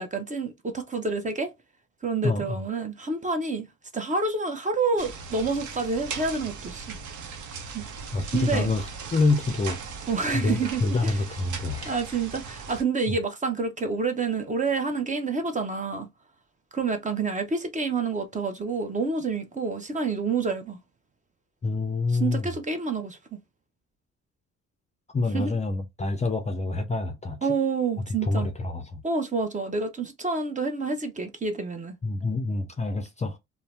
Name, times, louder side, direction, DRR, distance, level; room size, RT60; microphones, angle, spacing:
voice 1, 0.0-1.5 2.0-3.7 3.9-7.0 7.7-7.9 8.3-8.7 10.1-11.1 11.8-16.1 16.7-20.8 22.1-23.4 25.3-25.6 27.4-28.5 29.0-32.0, right 4 dB, 25° right, 0.7 m, -28 dB
voice 2, 2.2-2.6 8.1-8.8 9.1-9.8 10.3-11.9 21.6-22.5 25.1-27.4 28.3-29.0 32.0-33.4, left 3 dB, 25° left, 0.5 m, -26 dB
sound 1, 5.0-12.8, right 5 dB, 80° right, 0.6 m, -38 dB
2.7 x 2.0 x 3.2 m
cardioid pair, 90°, 30 cm